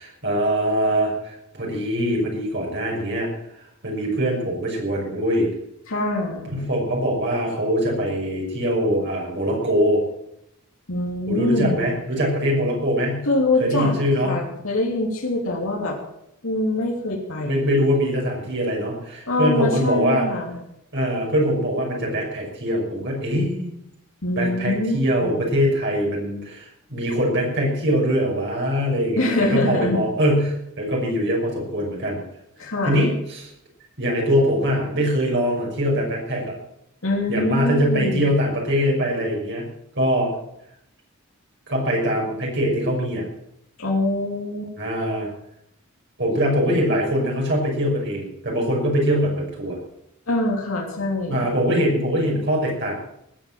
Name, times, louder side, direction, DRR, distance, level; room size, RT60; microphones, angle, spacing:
voice 1, 0.0-3.3 3.8-5.5 6.5-10.0 11.3-13.3 13.6-14.4 17.4-20.3 20.9-23.8 24.4-32.2 32.8-33.5 34.0-36.6 37.3-39.7 39.9-40.3 41.7-43.2 44.8-45.3 46.2-49.8 51.3-52.9, equal, 55° right, -2 dB, 5.9 m, -22 dB
voice 2, 5.9-6.4 10.9-11.8 13.2-13.9 14.2-16.0 16.4-17.7 19.3-20.6 24.2-25.0 25.2-25.5 29.2-30.0 32.6-33.1 37.0-38.2 43.8-44.7 50.3-51.5, left 2 dB, 80° left, 0 dB, 3.2 m, -24 dB
19.5 x 8.6 x 7.6 m, 0.78 s
head